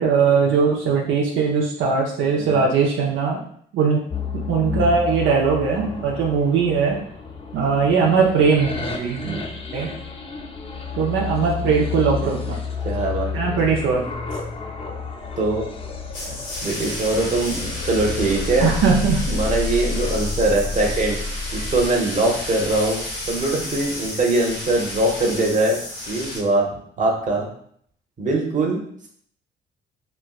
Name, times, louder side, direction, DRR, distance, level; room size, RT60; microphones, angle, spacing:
voice 1, 0.0-3.4 3.7-4.0 4.3-7.0 7.5-9.4 9.7-9.9 11.0-12.6 13.3-14.0 18.6-19.4, right 5 dB, 80° right, -2 dB, 0.6 m, -20 dB
voice 2, 2.4-2.7 4.6-4.9 5.9-6.1 8.0-8.1 9.2-9.5 12.8-13.3 15.4-15.7 16.2-16.4 16.6-18.7 19.3-21.2 21.5-23.0 23.3-25.8 26.1-26.7 27.0-27.5 28.2-28.8, right 2 dB, 40° right, -1 dB, 0.9 m, -22 dB
sound 1, 4.1-21.9, left 4 dB, 30° left, 0.5 m, -30 dB
sound 2, 16.1-26.4, left 1 dB, 90° left, 1.2 m, -32 dB
4.3 x 2.2 x 2.4 m, 0.63 s
cardioid pair, 90°, 20 cm